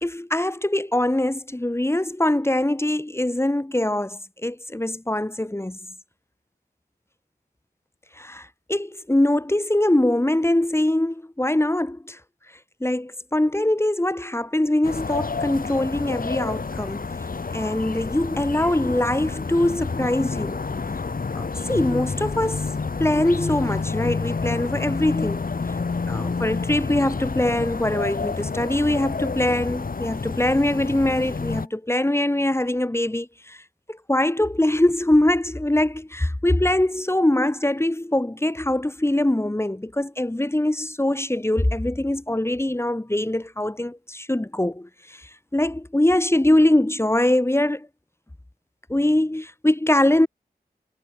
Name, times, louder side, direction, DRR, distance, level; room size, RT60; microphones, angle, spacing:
voice 1, 0.0-5.8 8.2-12.2 12.8-17.1 17.5-20.6 21.3-22.6 23.0-25.4 26.1-33.6 33.9-44.9 45.5-47.9 48.9-50.3, left 1 dB, 15° left, 1.4 m, -23 dB
sound 1, 14.8-31.7, left 4 dB, 60° left, 1.9 m, -29 dB
wide cardioid pair, 60°, 17 cm